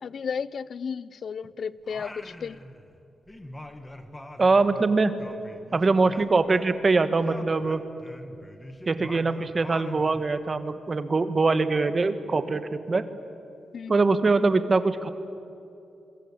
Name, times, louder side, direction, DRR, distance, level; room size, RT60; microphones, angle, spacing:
voice 1, 0.0-2.6 13.7-14.0, left 6 dB, 50° left, 18 dB, 0.6 m, -33 dB
Singing, 1.8-3.0 3.3-6.9 7.2-10.4, left 1 dB, 10° left, 1.5 m, -43 dB
voice 2, 4.4-5.1 5.7-7.8 8.9-13.0 13.9-15.1, right 3 dB, 25° right, 11 dB, 1.2 m, -23 dB
27.0 x 23.5 x 8.6 m, 2.7 s
wide cardioid pair, 175°, 0 cm